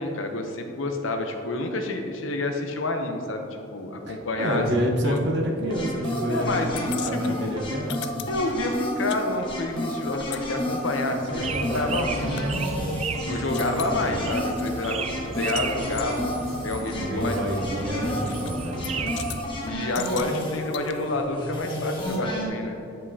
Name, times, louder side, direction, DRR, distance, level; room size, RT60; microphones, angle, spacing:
voice 1, 0.0-4.6 5.0-5.2 6.3-7.6 8.3-12.3 13.3-17.4 17.9-18.4 19.6-22.8, left 2 dB, 80° left, 4 dB, 0.8 m, -29 dB
voice 2, 4.0-8.2 11.1-14.3 16.9-19.1, equal, 60° right, 0 dB, 1.0 m, -29 dB
sound 1, 5.7-22.5, left 1 dB, 25° left, 1.2 m, -32 dB
sound 2, 6.8-9.2 9.5-12.5 12.9-13.0 13.3-14.0 14.4-15.7 16.0-16.1 16.9-17.0 18.3-18.6 18.8-19.4 19.9-20.9, left 12 dB, 60° left, 0.3 m, -40 dB
sound 3, 11.4-19.4, right 4 dB, 35° right, 0.3 m, -34 dB
9.5 x 5.3 x 2.8 m, 2.8 s
head